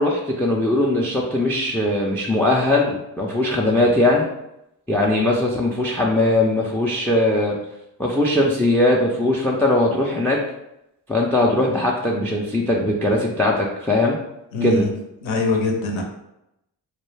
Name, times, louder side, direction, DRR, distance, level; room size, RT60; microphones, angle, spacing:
voice 1, 0.0-4.3 4.9-7.6 8.0-10.4 11.1-14.2 14.6-14.9, left 1 dB, 5° left, -1 dB, 0.3 m, -20 dB
voice 2, 14.5-14.9 15.2-16.0, left 2 dB, 70° left, 2 dB, 0.7 m, -22 dB
2.2 x 2.2 x 3.2 m, 0.86 s
supercardioid pair, 45°, 49 cm